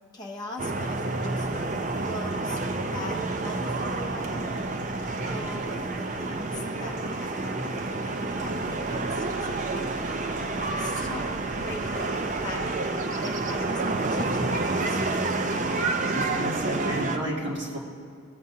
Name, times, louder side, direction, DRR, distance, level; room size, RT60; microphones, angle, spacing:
voice 1, 0.1-2.6 2.9-4.7 5.3-15.4, left 1 dB, 20° left, -2 dB, 0.8 m, -41 dB
sound 1, 0.6-17.2, right 2 dB, 35° right, 0.5 m, -29 dB
voice 2, 16.1-17.8, right 1 dB, 60° right, -5 dB, 2.2 m, -32 dB
17.5 x 7.5 x 2.8 m, 2.3 s
head